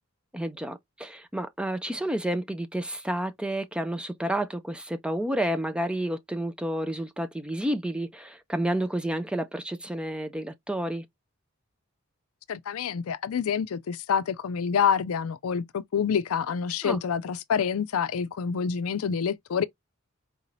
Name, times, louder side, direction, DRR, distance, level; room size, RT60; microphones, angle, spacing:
voice 1, 0.3-11.0 16.8-17.0, right 1 dB, 5° right, 0.4 m, -30 dB
voice 2, 12.5-19.6, left 7 dB, 80° left, 0.4 m, -27 dB
4.7 x 2.7 x 3.1 m
head